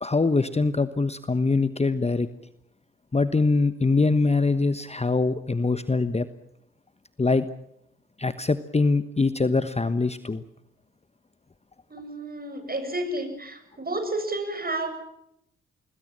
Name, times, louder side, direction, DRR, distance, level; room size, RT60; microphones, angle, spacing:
voice 1, 0.0-2.3 3.1-6.3 7.2-7.5 8.2-10.4, left 3 dB, 20° left, 13 dB, 1.2 m, -23 dB
voice 2, 11.9-14.9, right 2 dB, 30° right, 8 dB, 7.5 m, -31 dB
25.5 x 21.0 x 7.5 m, 0.80 s
hypercardioid pair, 40°, 32 cm